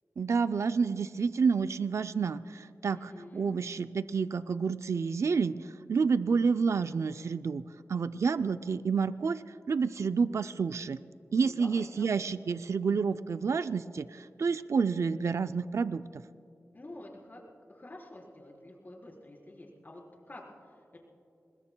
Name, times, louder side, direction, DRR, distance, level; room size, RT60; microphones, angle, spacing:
voice 1, 0.2-7.6 7.9-9.4 9.7-11.0 11.3-16.0, right 5 dB, 70° right, 12 dB, 0.4 m, -29 dB
voice 2, 2.9-3.7 11.4-12.1 16.7-17.4 17.7-21.0, left 1 dB, 40° left, -2 dB, 4.1 m, -49 dB
26.0 x 20.5 x 2.3 m, 2.6 s
wide cardioid pair, 75°, 5 cm